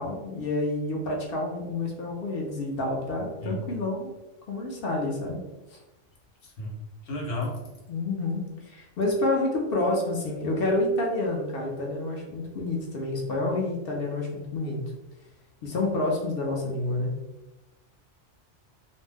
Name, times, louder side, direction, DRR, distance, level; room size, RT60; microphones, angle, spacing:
voice 1, 0.0-4.1 4.5-5.4 5.7-5.8 7.9-14.8 15.6-17.1, left 2 dB, 60° left, 0 dB, 0.7 m, -28 dB
voice 2, 6.4-7.6, left 1 dB, 80° left, -2 dB, 1.1 m, -33 dB
2.5 x 2.0 x 3.3 m, 0.99 s
omnidirectional pair, 1.3 m